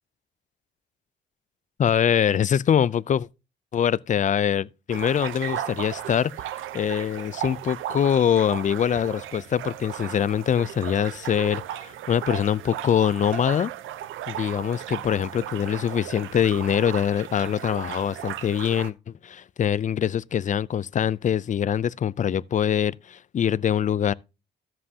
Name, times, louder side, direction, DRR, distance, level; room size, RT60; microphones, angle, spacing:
voice 1, 1.8-3.3 3.7-6.3 6.7-13.7 14.3-24.1, left 9 dB, 40° left, 0.4 m, -24 dB
sound 1, 4.9-18.9, right 12 dB, 80° right, 0.7 m, -36 dB
13.5 x 7.6 x 2.8 m
cardioid pair, 90°, 20 cm